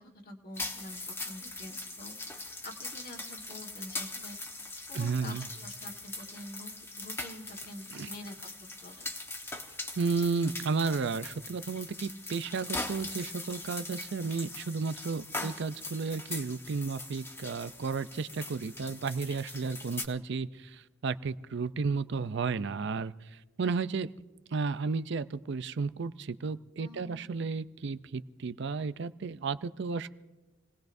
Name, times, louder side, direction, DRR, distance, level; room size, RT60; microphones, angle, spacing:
voice 1, 0.0-2.2 2.6-4.4 4.9-8.3 8.8-9.1 15.3-15.5 26.8-27.3, left 1 dB, 45° left, 1 dB, 1.7 m, -47 dB
sound 1, 0.5-20.1, left 2 dB, 15° left, 1.1 m, -41 dB
voice 2, 4.9-5.5 7.9-8.1 10.0-23.1 23.6-24.1 24.5-30.1, right 4 dB, 60° right, 14 dB, 0.5 m, -33 dB
28.0 x 19.0 x 2.6 m, 1.2 s
head